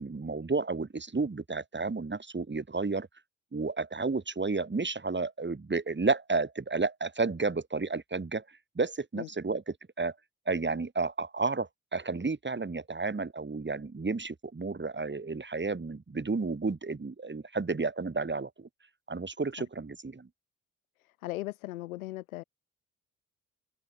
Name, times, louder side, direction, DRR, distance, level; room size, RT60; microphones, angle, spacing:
voice 1, 0.0-3.1 3.5-8.4 8.7-10.1 10.5-18.7 19.1-20.3, right 3 dB, 25° right, 2.8 m, -32 dB
voice 2, 21.2-22.4, left 17 dB, 90° left, 7.7 m, -37 dB
open air
hypercardioid pair, 40°, 41 cm